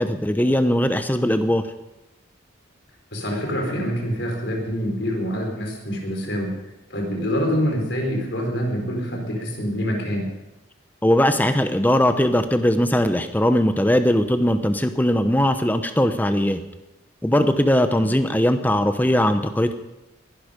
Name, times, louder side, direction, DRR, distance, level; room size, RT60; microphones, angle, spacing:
voice 1, 0.0-1.6 11.0-16.6 17.2-19.8, equal, 10° left, 9 dB, 0.8 m, -20 dB
voice 2, 3.1-6.6 6.9-10.3 17.9-18.0, equal, 60° left, 0 dB, 4.4 m, -26 dB
21.0 x 11.5 x 5.2 m, 0.98 s
head